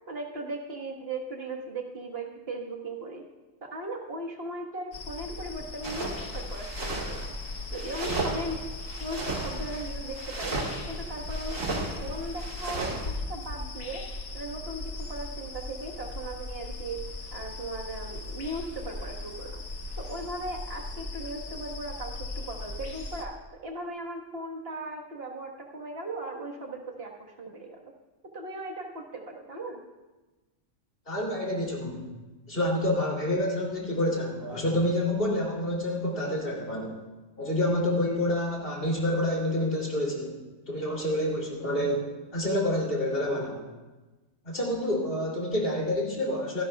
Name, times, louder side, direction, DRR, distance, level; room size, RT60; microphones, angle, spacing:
voice 1, 0.1-3.2 3.6-7.3 7.7-8.6 9.0-10.6 10.9-14.1 14.3-17.0 17.3-19.6 20.0-27.9 28.3-29.8, right 2 dB, 50° right, 0 dB, 1.8 m, -38 dB
sound 1, 4.9-23.3, left 2 dB, 60° left, 1.6 m, -38 dB
sound 2, 5.8-13.1, right 2 dB, 85° right, 2.3 m, -35 dB
voice 2, 31.1-32.1 32.5-37.0 37.4-40.4 40.7-42.1 42.3-43.6 44.4-46.6, left 1 dB, 45° left, -2 dB, 3.4 m, -28 dB
25.5 x 12.5 x 2.4 m, 1.2 s
omnidirectional pair, 1.3 m